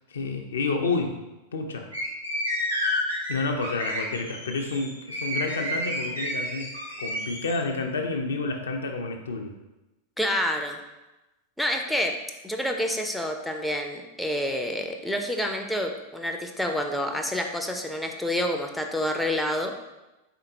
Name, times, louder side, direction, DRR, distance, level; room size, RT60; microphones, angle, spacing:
voice 1, 0.1-1.2 1.5-1.9 3.3-6.7 7.0-9.5, left 3 dB, 65° left, 4 dB, 0.5 m, -29 dB
sound 1, 1.9-7.6, equal, 90° right, 1.3 m, -31 dB
voice 2, 10.2-10.8 11.6-12.2 12.4-19.7, equal, ahead, 2 dB, 0.4 m, -28 dB
4.3 x 3.7 x 2.7 m, 1.0 s
figure-of-eight pair, 90°, 0 cm